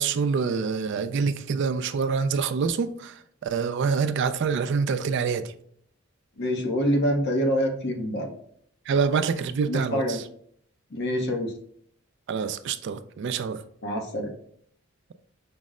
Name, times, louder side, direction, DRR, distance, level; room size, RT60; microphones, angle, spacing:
voice 1, 0.0-3.1 3.4-5.5 8.9-10.2 12.3-13.6, right 5 dB, 55° right, 0.3 m, -26 dB
voice 2, 6.4-8.3 9.7-10.2 10.9-11.5 13.8-14.3, equal, 55° left, 0.8 m, -26 dB
5.2 x 2.0 x 3.6 m
head